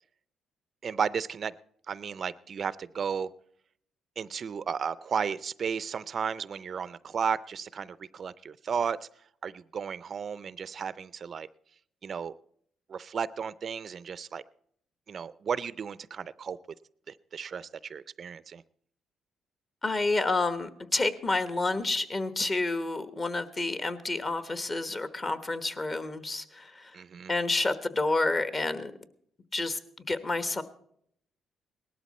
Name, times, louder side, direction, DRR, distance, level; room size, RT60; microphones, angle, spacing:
voice 1, 0.8-1.5 1.9-3.3 4.2-9.0 9.4-11.5 12.0-12.3 12.9-14.4 15.1-16.6 17.1-18.6 26.9-27.3, right 6 dB, 50° right, 18 dB, 0.4 m, -34 dB
voice 2, 19.8-27.0 27.3-28.9 29.5-29.8 30.1-30.6, left 2 dB, 35° left, 12 dB, 1.3 m, -29 dB
18.5 x 12.5 x 4.2 m, 0.66 s
cardioid pair, 90°, 0 cm